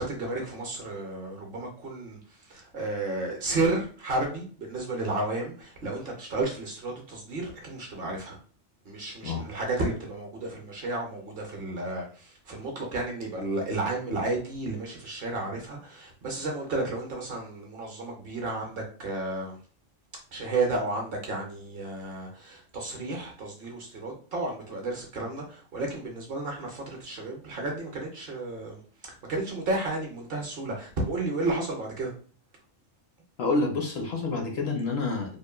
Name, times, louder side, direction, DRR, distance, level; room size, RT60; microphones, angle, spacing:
voice 1, 0.0-8.4 8.8-19.6 20.3-32.1, right 2 dB, 55° right, 1 dB, 0.8 m, -32 dB
voice 2, 33.4-35.4, left 3 dB, 65° left, 2 dB, 0.8 m, -28 dB
3.0 x 2.2 x 2.2 m, 0.42 s
omnidirectional pair, 1.3 m